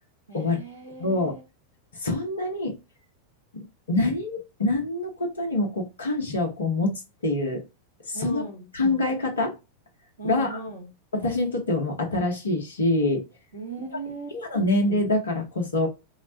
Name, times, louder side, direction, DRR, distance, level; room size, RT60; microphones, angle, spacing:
voice 1, 0.3-1.4 8.1-8.7 10.2-10.9 13.5-14.4, right 3 dB, 90° right, -1 dB, 1.6 m, -38 dB
voice 2, 1.0-1.4 2.0-2.8 3.5-7.6 8.1-8.4 8.7-9.6 10.2-10.6 11.1-13.2 14.3-15.9, left 2 dB, 70° left, 3 dB, 1.0 m, -25 dB
3.9 x 2.2 x 2.6 m, 0.26 s
figure-of-eight pair, 90°, 0 cm